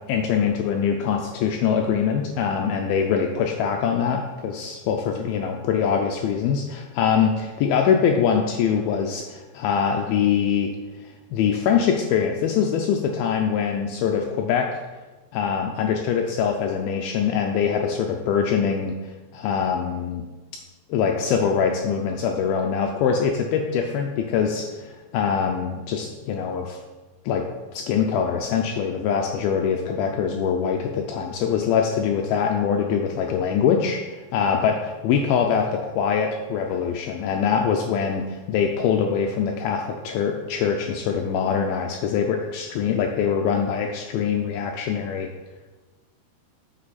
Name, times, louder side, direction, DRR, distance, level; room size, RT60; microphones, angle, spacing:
voice 1, 0.1-10.7 11.3-14.7 15.3-19.0 19.3-20.2 20.9-26.8 27.3-27.4 27.7-45.3, left 7 dB, 85° left, 2 dB, 2.1 m, -23 dB
7.6 x 6.3 x 4.1 m, 1.2 s
omnidirectional pair, 4.9 m